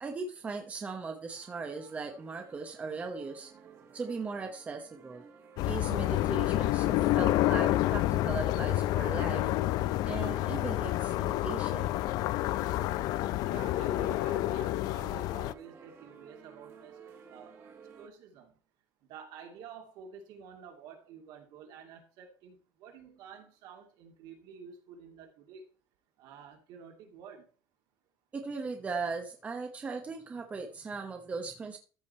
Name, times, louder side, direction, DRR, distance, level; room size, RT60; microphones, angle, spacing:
voice 1, 0.0-3.5 3.9-5.2 5.7-9.5 10.0-11.9 28.3-31.8, right 4 dB, 20° right, 1.0 m, -38 dB
sound 1, 1.3-18.1, right 6 dB, 40° right, 1.8 m, -54 dB
sound 2, 5.6-15.5, left 15 dB, 60° left, 0.4 m, -29 dB
Dog, 5.8-7.2 8.3-10.0, left 6 dB, 85° left, 2.1 m, -51 dB
voice 2, 13.5-17.0 17.3-17.5 18.0-18.5 19.1-25.7 26.2-27.4, right 5 dB, 70° right, 2.6 m, -49 dB
13.5 x 5.1 x 4.3 m
cardioid pair, 175°, 8 cm